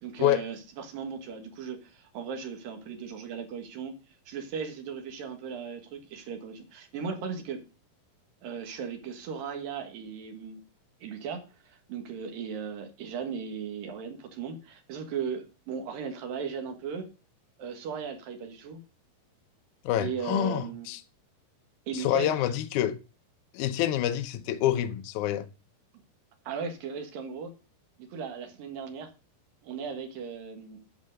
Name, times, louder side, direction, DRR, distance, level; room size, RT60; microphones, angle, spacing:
voice 1, 0.0-3.9 4.3-7.6 8.4-10.6 11.0-17.1 17.6-18.8 20.0-20.9 21.9-22.5 26.4-27.5 28.0-29.1 29.6-30.8, right 6 dB, 65° right, 3.1 m, -37 dB
voice 2, 19.9-21.0 21.9-23.0 23.5-25.5, left 12 dB, 75° left, 1.8 m, -27 dB
10.5 x 5.6 x 6.4 m
omnidirectional pair, 4.6 m